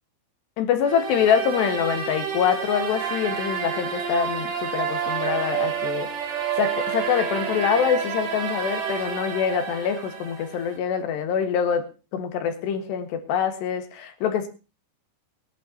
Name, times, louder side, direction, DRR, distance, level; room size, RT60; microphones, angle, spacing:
voice 1, 0.6-11.9 12.1-14.5, left 8 dB, 75° left, 8 dB, 3.7 m, -25 dB
sound 1, 0.8-10.8, right 7 dB, 55° right, 3.6 m, -29 dB
21.0 x 11.5 x 2.9 m, 0.31 s
omnidirectional pair, 5.1 m